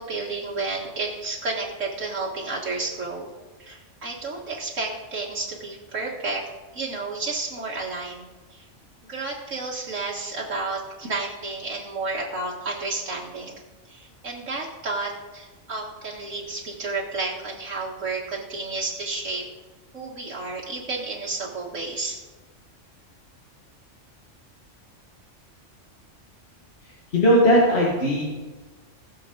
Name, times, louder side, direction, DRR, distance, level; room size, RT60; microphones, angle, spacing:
voice 1, 0.0-3.3 3.6-6.4 6.7-8.7 9.1-13.6 13.9-19.4 19.9-22.2, right 3 dB, 85° right, -4 dB, 2.0 m, -31 dB
voice 2, 27.1-28.2, equal, 55° left, -4 dB, 2.0 m, -18 dB
20.0 x 6.9 x 3.9 m, 1.2 s
omnidirectional pair, 1.3 m